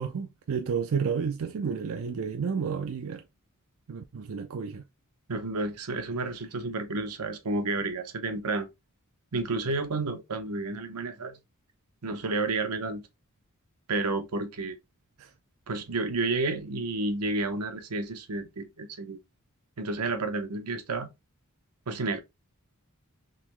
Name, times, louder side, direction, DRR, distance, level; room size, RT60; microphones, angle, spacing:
voice 1, 0.0-3.2 3.9-4.8 15.2-15.3, right 6 dB, 65° right, 0.4 m, -31 dB
voice 2, 5.3-8.7 9.3-11.4 12.0-13.0 13.9-14.8 15.7-19.2 19.8-21.1 21.9-22.2, right 3 dB, 85° right, 0.8 m, -31 dB
3.8 x 3.0 x 3.1 m
head